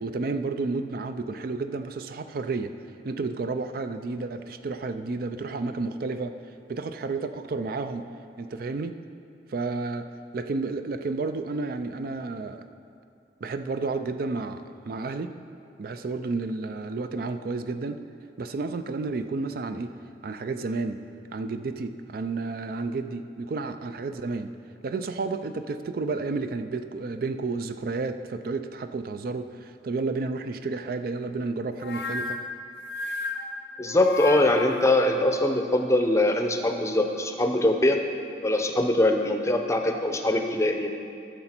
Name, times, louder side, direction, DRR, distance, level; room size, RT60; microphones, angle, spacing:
voice 1, 0.0-2.7 3.0-6.3 6.7-8.1 8.4-9.0 9.5-10.1 10.3-12.6 13.4-15.3 15.8-18.0 18.4-20.0 20.2-21.0 21.3-24.5 24.8-32.4, right 3 dB, 55° right, 9 dB, 0.4 m, -31 dB
sound 1, 31.8-34.9, left 3 dB, 80° left, 0.7 m, -33 dB
voice 2, 33.8-38.0 38.4-40.9, left 1 dB, 15° left, 5 dB, 0.6 m, -22 dB
13.5 x 6.7 x 4.4 m, 2.5 s
head